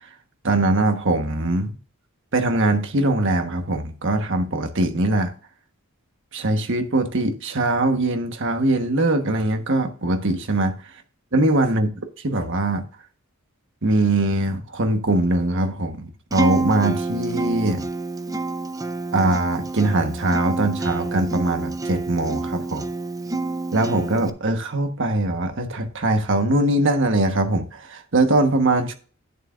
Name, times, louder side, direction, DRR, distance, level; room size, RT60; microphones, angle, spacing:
voice 1, 0.4-1.8 2.3-5.3 6.3-10.8 11.3-11.9 12.2-12.8 13.8-17.8 19.1-22.9 23.7-28.9, right 2 dB, 60° right, 1.3 m, -21 dB
Acoustic guitar, 16.3-24.3, right 3 dB, 15° right, 0.6 m, -28 dB
11.0 x 9.4 x 2.5 m
head